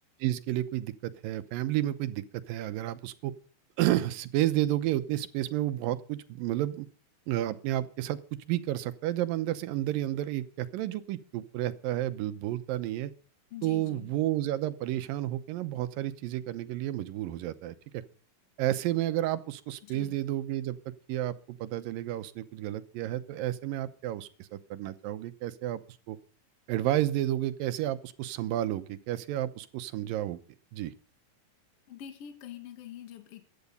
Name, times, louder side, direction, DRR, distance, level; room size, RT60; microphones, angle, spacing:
voice 1, 0.2-3.3 3.8-6.9 7.3-8.2 8.5-13.1 13.6-18.0 18.6-20.8 21.1-25.8 26.1-26.2 26.7-30.4 30.7-30.9, right 14 dB, 85° right, 12 dB, 2.6 m, -31 dB
voice 2, 13.5-14.1 19.8-20.2 31.9-33.5, left 10 dB, 50° left, 8 dB, 2.2 m, -45 dB
15.5 x 10.5 x 5.4 m, 0.40 s
omnidirectional pair, 3.9 m